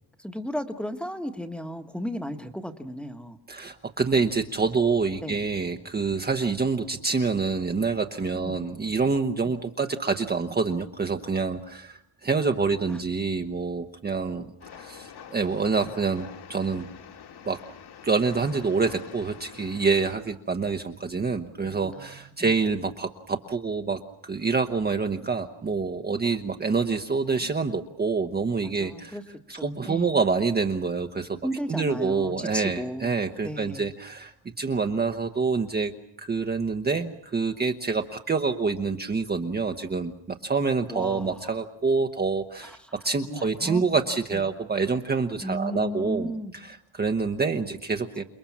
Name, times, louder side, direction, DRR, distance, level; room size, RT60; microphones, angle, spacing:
voice 1, 0.2-3.4 5.2-5.4 8.4-8.6 12.9-13.0 21.6-22.5 28.6-29.2 29.5-30.1 31.4-33.1 33.4-33.9 40.9-41.5 42.6-42.8 43.3-43.8 44.3-44.4 45.4-46.5, equal, ahead, 6 dB, 1.4 m, -34 dB
voice 2, 3.5-16.9 17.5-17.6 18.0-29.2 29.5-31.4 31.7-35.9 36.2-42.8 43.0-48.2, right 4 dB, 20° right, 4 dB, 1.0 m, -27 dB
Train, 14.6-20.1, left 8 dB, 55° left, 2.4 m, -46 dB
29.0 x 21.5 x 7.3 m, 0.74 s
cardioid pair, 160°, 47 cm